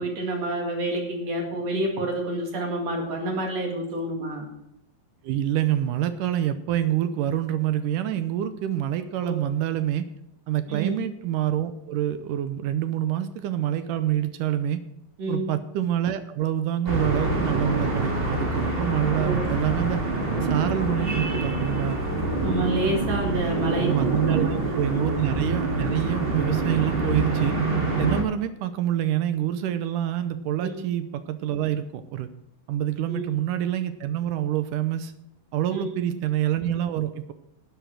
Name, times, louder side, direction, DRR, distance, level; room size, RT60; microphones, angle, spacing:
voice 1, 0.0-4.5 9.2-9.3 10.7-10.9 15.2-15.5 19.1-19.5 22.4-24.5 24.9-25.2 30.6-30.8 33.1-33.2 35.7-36.2, right 1 dB, 55° right, 2 dB, 3.0 m, -29 dB
voice 2, 5.2-10.0 10.5-14.8 15.3-20.0 20.4-22.0 23.8-27.6 28.0-32.3 32.7-35.1 35.5-37.3, right 11 dB, 75° right, 11 dB, 2.2 m, -26 dB
sound 1, 16.8-28.2, right 2 dB, 25° right, 1.5 m, -26 dB
12.5 x 8.3 x 6.3 m, 0.85 s
omnidirectional pair, 4.0 m